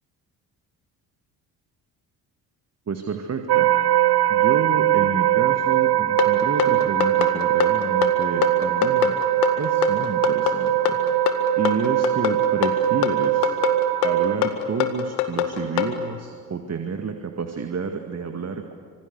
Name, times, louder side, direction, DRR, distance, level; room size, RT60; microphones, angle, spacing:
voice 1, 2.9-3.7 4.3-9.1 9.6-11.0 11.6-13.5 14.0-18.7, right 5 dB, 35° right, 5 dB, 2.0 m, -29 dB
sound 1, 3.5-14.4, right 15 dB, 55° right, 0.9 m, -21 dB
sound 2, 6.2-15.9, left 13 dB, 70° left, 2.0 m, -24 dB
26.0 x 25.5 x 8.2 m, 2.1 s
figure-of-eight pair, 45°, 46 cm